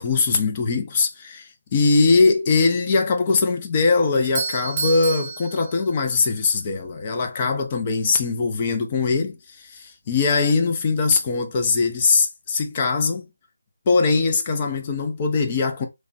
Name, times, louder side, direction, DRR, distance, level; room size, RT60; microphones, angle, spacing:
voice 1, 0.0-13.3 13.9-15.9, left 4 dB, 30° left, 0.5 m, -21 dB
Doorbell, 4.1-6.3, right 4 dB, 30° right, 0.7 m, -30 dB
3.1 x 2.2 x 2.6 m
figure-of-eight pair, 160°, 0 cm